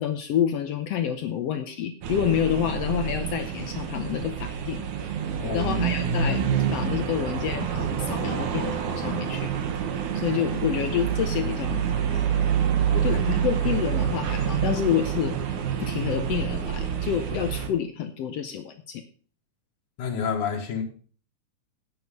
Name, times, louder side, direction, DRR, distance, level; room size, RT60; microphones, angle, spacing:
voice 1, 0.0-4.8 5.5-6.4 6.7-9.5 10.1-12.3 13.0-15.3 15.8-19.0, left 9 dB, 70° left, 1.6 m, -28 dB
sound 1, 2.0-17.7, right 8 dB, 75° right, 2.7 m, -27 dB
voice 2, 5.4-5.7 10.4-10.6 12.9-13.2 20.0-20.8, left 6 dB, 85° left, 3.2 m, -30 dB
9.5 x 8.6 x 5.3 m
omnidirectional pair, 3.5 m